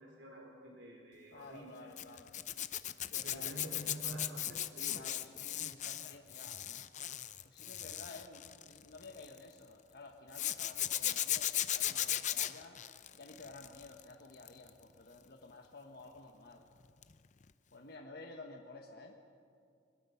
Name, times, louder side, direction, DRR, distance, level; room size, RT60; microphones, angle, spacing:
voice 1, 0.0-1.8 3.2-5.1, right 1 dB, 75° right, 0 dB, 3.8 m, -48 dB
voice 2, 1.3-2.3 3.1-4.3 4.9-6.9 7.4-12.8 13.1-16.6 17.7-19.2, left 3 dB, 55° left, 2 dB, 1.2 m, -53 dB
Zipper (clothing), 2.0-9.4 10.3-14.0 14.3-14.7 17.0-17.2 17.4-17.5, left 12 dB, 40° left, 0.6 m, -37 dB
23.0 x 21.0 x 5.7 m, 2.3 s
head